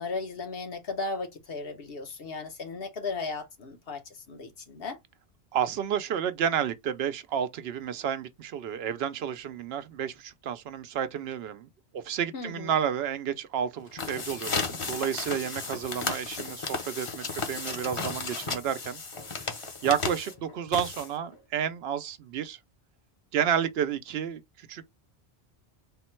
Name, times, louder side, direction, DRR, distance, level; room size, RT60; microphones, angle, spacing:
voice 1, 0.0-5.0 12.3-12.7, left 3 dB, 70° left, 1.1 m, -36 dB
voice 2, 5.5-11.7 11.9-19.0 19.4-19.5 19.8-22.6 23.3-24.8, right 9 dB, 80° right, 0.8 m, -31 dB
sound 1, 13.8-21.4, left 4 dB, 35° left, 0.7 m, -34 dB
3.6 x 2.1 x 4.3 m
omnidirectional pair, 1.0 m